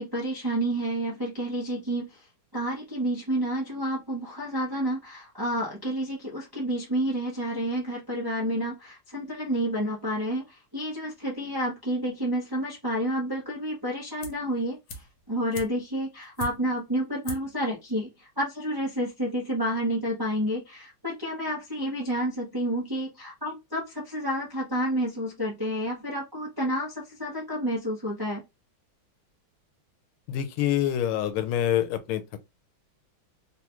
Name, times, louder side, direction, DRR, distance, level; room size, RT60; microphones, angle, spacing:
voice 1, 0.0-2.2 2.5-28.4, equal, 35° right, 0.3 m, -30 dB
sound 1, 14.2-14.5 14.9-16.9 17.2-17.6 17.9-18.0, left 1 dB, 70° left, 1.5 m, -40 dB
voice 2, 30.3-32.4, left 11 dB, 90° left, 1.5 m, -26 dB
3.7 x 2.3 x 2.9 m
omnidirectional pair, 2.3 m